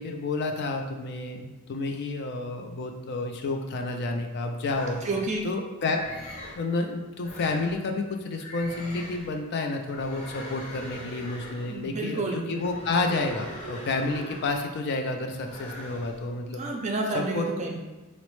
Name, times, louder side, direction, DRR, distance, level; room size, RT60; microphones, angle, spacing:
voice 1, 0.0-5.0 5.4-6.0 6.6-16.6 17.1-17.5, left 3 dB, 50° left, 4 dB, 0.4 m, -30 dB
sound 1, 4.6-5.4 5.9-6.6 7.2-7.8 8.4-9.3 9.9-11.8 12.6-14.7 15.4-16.2, left 1 dB, 30° left, 0.8 m, -41 dB
voice 2, 5.0-5.4 11.7-12.6 16.6-17.8, right 2 dB, 30° right, 1 dB, 0.5 m, -30 dB
4.0 x 2.0 x 3.0 m, 1.2 s
head